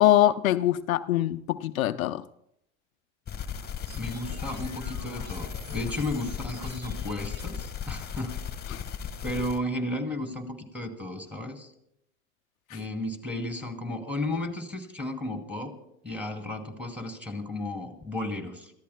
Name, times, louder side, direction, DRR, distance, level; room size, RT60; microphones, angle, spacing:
voice 1, 0.0-2.2 8.7-8.8, left 13 dB, 90° left, 0.5 m, -23 dB
sound 1, 3.3-9.6, left 8 dB, 25° left, 1.3 m, -36 dB
voice 2, 3.9-8.3 9.2-11.7 12.7-15.7 16.0-18.7, left 1 dB, 5° right, 2.9 m, -33 dB
sound 2, 3.9-7.5, right 2 dB, 60° right, 4.9 m, -48 dB
28.5 x 14.5 x 2.2 m
hypercardioid pair, 85°, 40 cm